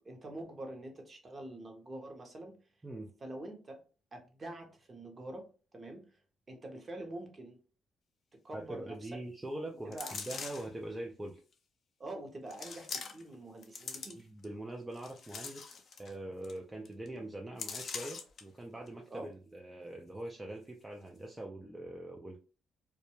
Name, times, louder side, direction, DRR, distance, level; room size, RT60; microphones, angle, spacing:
voice 1, 0.0-2.5 3.2-3.7 4.1-5.4 5.7-6.0 6.5-7.6 8.4-9.1 9.8-10.2 12.0-14.3 17.1-17.2 19.1-19.3, right 1 dB, 35° right, 3 dB, 0.7 m, -45 dB
voice 2, 8.5-11.4 14.2-22.4, right 1 dB, 15° right, 0 dB, 0.4 m, -43 dB
sound 1, 9.9-10.8 11.5-11.6 12.5-13.3 13.6-14.4 14.9-16.1 16.4-16.6 16.9-17.1 17.6-18.4 18.9-19.0, left 5 dB, 55° left, 0.4 m, -42 dB
2.1 x 2.1 x 2.9 m, 0.36 s
cardioid pair, 90°, 0 cm